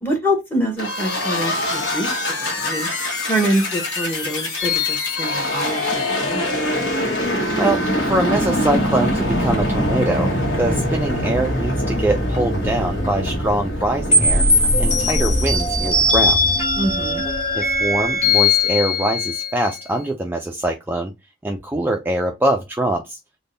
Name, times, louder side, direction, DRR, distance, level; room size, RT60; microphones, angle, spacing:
voice 1, 0.0-2.9 3.2-6.5 16.8-17.2, equal, 10° left, 1.0 m, -25 dB
sound 1, 0.8-17.4, left 1 dB, 55° left, 1.1 m, -24 dB
sound 2, 4.6-6.1 14.1-19.8, left 2 dB, 30° left, 1.4 m, -20 dB
voice 2, 7.5-10.3 10.6-14.5 14.8-16.4 17.5-21.1 21.4-23.2, right 1 dB, 10° right, 0.3 m, -23 dB
3.5 x 2.2 x 3.8 m
head